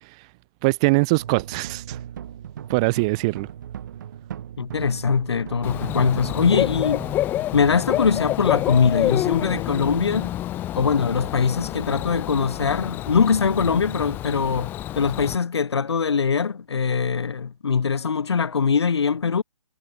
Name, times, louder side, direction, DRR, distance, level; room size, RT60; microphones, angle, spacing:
voice 1, 0.6-2.0 2.7-3.5, right 28 dB, 10° right, 0.5 m, -22 dB
sound 1, 1.2-8.4, right 9 dB, 35° right, 7.6 m, -38 dB
voice 2, 4.6-7.1 7.5-10.3 10.7-19.4, left 6 dB, 50° left, 1.8 m, -22 dB
Bird / Cricket, 5.6-15.3, left 13 dB, 10° left, 1.7 m, -28 dB
figure-of-eight pair, 145°, 18 cm